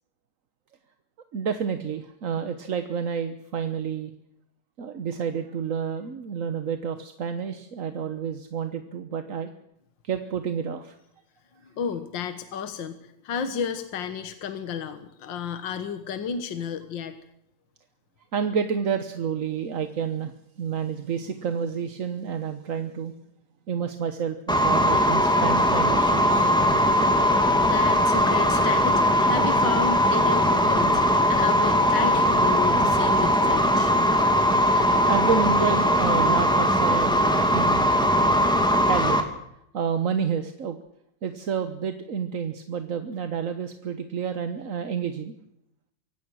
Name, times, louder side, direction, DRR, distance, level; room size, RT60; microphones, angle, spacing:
voice 1, 1.3-4.1 4.8-9.5 10.0-10.9 18.3-20.3 20.6-23.1 23.7-26.5 35.1-37.2 37.5-37.8 38.9-39.2 39.7-40.8 41.2-45.3, right 7 dB, 45° right, 8 dB, 1.3 m, -29 dB
voice 2, 11.6-17.1 27.6-33.9, left 7 dB, 65° left, 9 dB, 2.0 m, -32 dB
sound 1, 24.5-39.2, equal, ahead, 2.4 m, -20 dB
24.5 x 17.0 x 6.4 m, 0.77 s
omnidirectional pair, 2.3 m